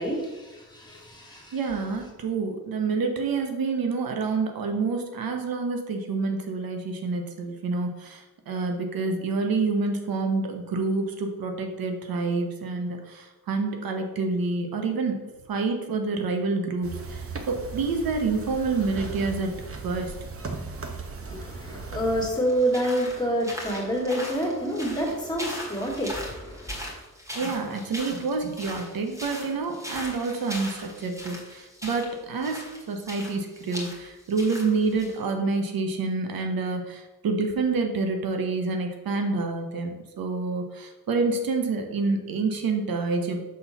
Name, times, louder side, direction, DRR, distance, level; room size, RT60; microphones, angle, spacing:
voice 1, 0.0-1.6 21.2-26.9, equal, 10° left, -2 dB, 2.2 m, -28 dB
voice 2, 1.5-15.2 15.5-19.6 19.8-20.1 27.3-43.4, right 4 dB, 85° right, 4 dB, 1.0 m, -28 dB
sound 1, 16.8-22.3, right 4 dB, 40° right, 1.0 m, -37 dB
sound 2, 22.4-35.2, left 1 dB, 10° right, 1.9 m, -39 dB
6.3 x 4.1 x 5.9 m, 1.1 s
cardioid pair, 100°, 35 cm